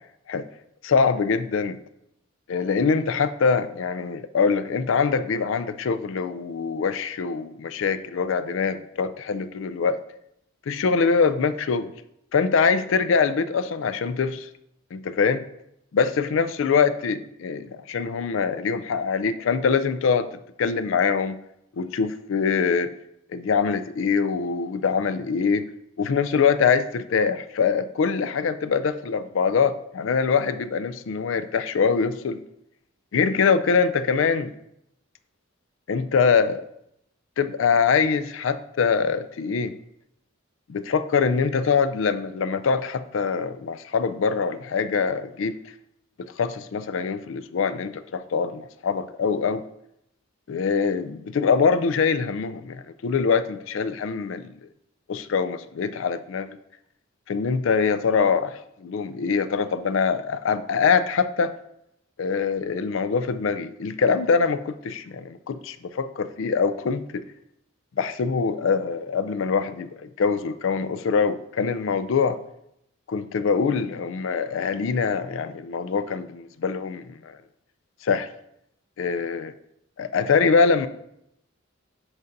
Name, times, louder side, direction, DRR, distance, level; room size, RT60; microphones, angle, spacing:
voice 1, 0.8-1.8 2.5-10.0 10.7-11.9 12.3-14.5 14.9-15.4 15.9-20.3 20.6-21.4 21.7-22.9 23.3-25.6 26.0-32.4 33.1-34.5 35.9-36.6 37.4-39.7 40.7-45.6 46.2-49.6 50.5-54.5 55.1-56.6 57.3-61.5 62.2-67.2 68.0-72.4 73.1-77.4 78.0-78.3 79.0-79.5 80.0-80.9, left 5 dB, 65° left, 13 dB, 0.4 m, -23 dB
10.5 x 4.0 x 2.6 m, 0.77 s
head